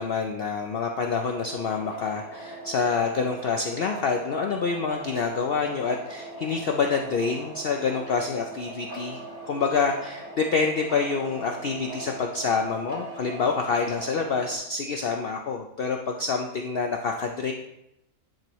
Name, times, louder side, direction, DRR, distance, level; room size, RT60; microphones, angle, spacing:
voice 1, 0.0-9.2 9.5-17.5, left 5 dB, 65° left, 3 dB, 0.6 m, -27 dB
sound 1, 1.3-14.6, right 1 dB, 35° right, 1.7 m, -40 dB
10.5 x 4.5 x 3.0 m, 0.85 s
omnidirectional pair, 1.5 m